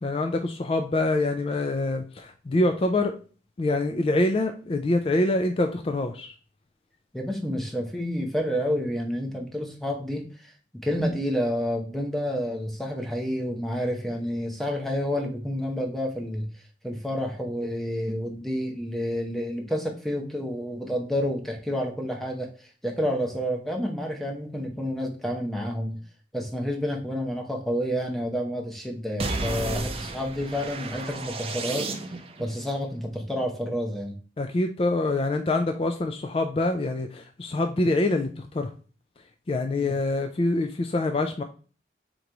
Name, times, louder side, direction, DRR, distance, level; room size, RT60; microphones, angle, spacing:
voice 1, 0.0-3.1 3.6-6.4 34.4-38.7 39.5-41.4, left 2 dB, 30° left, 5 dB, 0.3 m, -25 dB
voice 2, 7.1-26.0 26.3-34.2, equal, ahead, 1 dB, 0.8 m, -29 dB
sound 1, 29.2-32.4, right 3 dB, 30° right, 0.5 m, -32 dB
3.9 x 3.0 x 4.6 m, 0.38 s
head